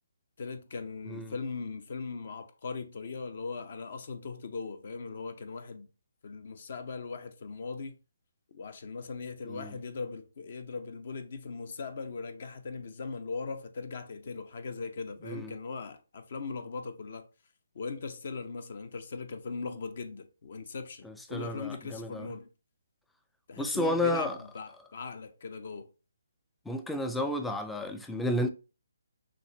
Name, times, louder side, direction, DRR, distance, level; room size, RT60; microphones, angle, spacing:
voice 1, 0.4-5.9 6.2-8.0 8.5-17.2 17.7-22.5 23.5-25.9, left 4 dB, 50° left, 0.7 m, -39 dB
voice 2, 21.0-22.3 23.6-24.4 26.7-28.5, left 1 dB, 5° left, 0.4 m, -32 dB
6.0 x 2.5 x 3.0 m
figure-of-eight pair, 145°, 0 cm